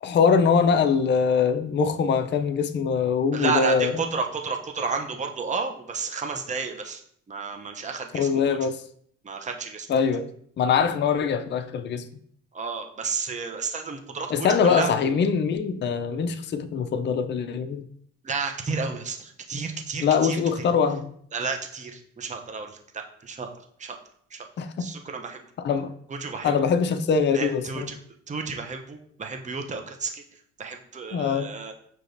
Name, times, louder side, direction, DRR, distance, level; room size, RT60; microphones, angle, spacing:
voice 1, 0.0-4.1 8.1-8.8 9.9-10.3 10.6-12.0 14.3-17.8 20.0-21.1 24.6-24.9 25.6-25.9 26.4-27.9 31.1-31.5, left 6 dB, 35° left, 0.5 m, -23 dB
voice 2, 3.3-7.0 7.3-8.6 9.2-10.0 12.5-14.9 18.2-20.7 21.3-23.5 23.8-24.0 24.3-24.4 24.8-25.4 26.1-26.5 27.3-28.0 28.3-30.2 30.6-31.7, right 4 dB, 25° right, 0.6 m, -31 dB
6.4 x 3.0 x 2.6 m
cardioid pair, 90°, 30 cm